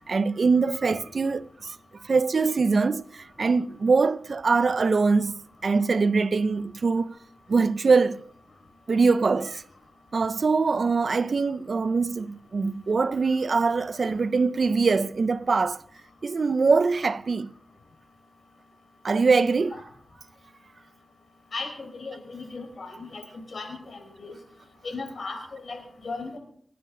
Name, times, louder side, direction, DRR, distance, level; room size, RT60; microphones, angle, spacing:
voice 1, 0.0-1.8 2.0-5.4 5.6-7.1 7.5-8.2 8.9-9.6 10.1-15.8 16.2-17.5 19.0-19.8, right 4 dB, 65° right, 0.6 m, -23 dB
voice 2, 21.5-23.2 23.5-24.3 24.8-26.4, left 3 dB, 70° left, 5.0 m, -37 dB
27.0 x 10.5 x 3.8 m
cardioid pair, 55°, 0 cm